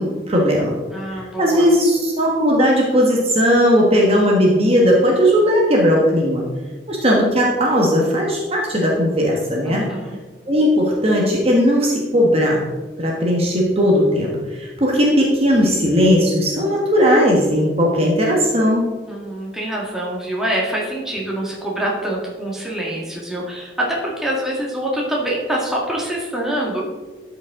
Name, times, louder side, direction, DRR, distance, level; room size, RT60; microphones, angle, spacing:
voice 1, 0.0-0.7 1.1-6.4 6.9-9.9 10.5-12.6 13.0-18.8, equal, 35° right, -2 dB, 1.3 m, -17 dB
voice 2, 0.9-1.7 9.7-10.2 19.1-26.8, right 1 dB, 5° right, -4 dB, 1.7 m, -25 dB
12.0 x 5.2 x 3.7 m, 1.3 s
head